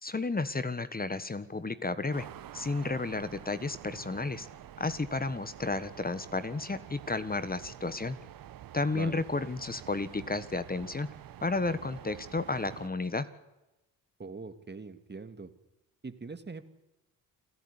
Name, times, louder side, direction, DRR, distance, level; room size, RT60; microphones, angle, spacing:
voice 1, 0.0-2.3 2.5-4.5 4.8-8.2 8.7-11.1 11.4-13.3, left 3 dB, 20° left, 13 dB, 1.4 m, -32 dB
sound 1, 2.1-12.9, right 12 dB, 60° right, 0.9 m, -48 dB
voice 2, 8.9-9.3 14.2-15.5 16.0-16.7, right 4 dB, 25° right, 10 dB, 2.1 m, -42 dB
28.5 x 12.0 x 9.7 m, 0.99 s
supercardioid pair, 60°, 40 cm